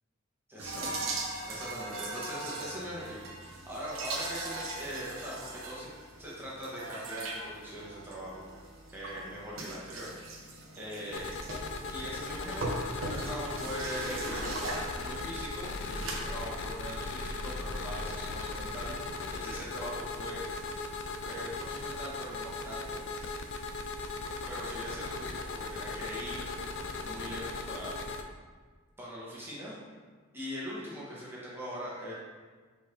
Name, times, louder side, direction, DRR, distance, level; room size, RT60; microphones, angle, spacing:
voice 1, 0.5-1.2 1.5-5.9 6.2-8.4 8.9-10.1 10.8-11.3 11.9-14.5 15.0-20.4 21.3-23.4 24.5-26.4 27.0-27.9 29.0-29.7 30.3-32.1, equal, 10° right, -7 dB, 1.2 m, -41 dB
sound 1, 0.6-16.1, right 2 dB, 85° right, 0.8 m, -40 dB
sound 2, 11.1-28.2, left 3 dB, 60° left, 0.4 m, -38 dB
5.1 x 3.6 x 2.8 m, 1.5 s
head